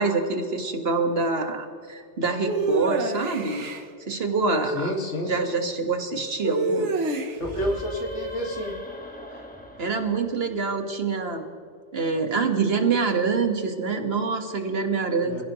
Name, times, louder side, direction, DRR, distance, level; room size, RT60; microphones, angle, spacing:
voice 1, 0.0-3.7 4.1-4.9 5.3-6.9 9.8-11.4 11.9-15.4, right 4 dB, 60° right, 4 dB, 1.9 m, -25 dB
sound 1, 2.5-3.8 6.4-7.6, right 3 dB, 80° right, 1.6 m, -27 dB
voice 2, 4.7-5.3 7.4-8.7 15.2-15.4, equal, 75° left, 1 dB, 2.6 m, -29 dB
sound 2, 7.4-11.0, equal, 5° left, 1.7 m, -40 dB
27.5 x 16.5 x 3.2 m, 2.2 s
omnidirectional pair, 1.2 m